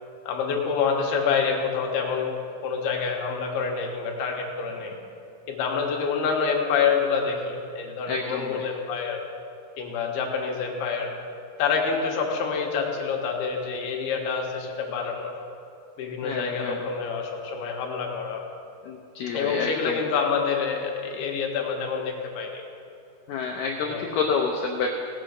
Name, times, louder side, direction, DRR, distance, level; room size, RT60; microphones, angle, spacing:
voice 1, 0.3-2.3 2.6-4.9 5.5-9.2 9.8-11.1 11.6-15.3 16.0-18.4 19.3-22.6 23.8-24.0, left 5 dB, 75° left, 1 dB, 3.0 m, -27 dB
voice 2, 8.1-8.6 16.2-16.8 18.8-20.0 23.3-24.9, left 5 dB, 90° left, 0 dB, 1.9 m, -28 dB
17.0 x 6.2 x 6.4 m, 2.5 s
omnidirectional pair, 4.9 m